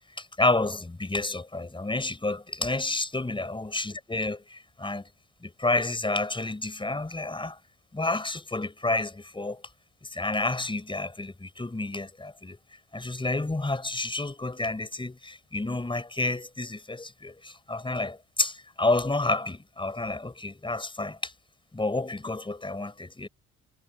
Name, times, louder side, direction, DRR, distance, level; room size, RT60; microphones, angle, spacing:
voice 1, 0.2-5.1 5.4-7.6 7.9-9.6 10.0-12.6 12.9-21.3 21.7-23.3, left 2 dB, 15° left, 6.5 m, -30 dB
cardioid pair, 90°, 30 cm